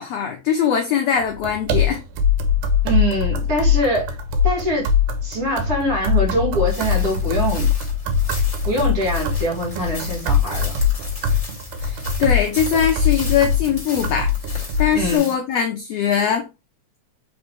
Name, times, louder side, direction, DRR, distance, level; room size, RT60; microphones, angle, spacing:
voice 1, 0.0-2.0 11.8-16.5, left 8 dB, 80° left, 1.4 m, -21 dB
sound 1, 1.2-15.2, left 6 dB, 80° right, 2.2 m, -22 dB
voice 2, 2.8-4.1 4.4-4.9 5.2-7.7 8.7-10.7 14.9-15.3, equal, 45° right, 2.8 m, -23 dB
sound 2, 6.7-15.3, left 1 dB, 40° left, 0.4 m, -37 dB
5.0 x 3.1 x 3.2 m
omnidirectional pair, 3.7 m